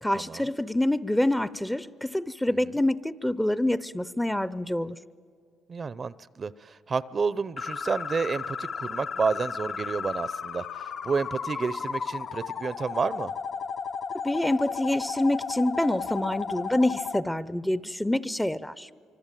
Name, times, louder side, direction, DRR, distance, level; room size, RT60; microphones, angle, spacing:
voice 1, 0.0-5.0 14.2-18.9, left 1 dB, 5° left, 0.6 m, -26 dB
voice 2, 5.7-13.3, right 5 dB, 40° right, 0.6 m, -30 dB
sound 1, 7.6-17.2, left 6 dB, 55° left, 0.7 m, -34 dB
25.0 x 25.0 x 9.0 m
cardioid pair, 90°, 0 cm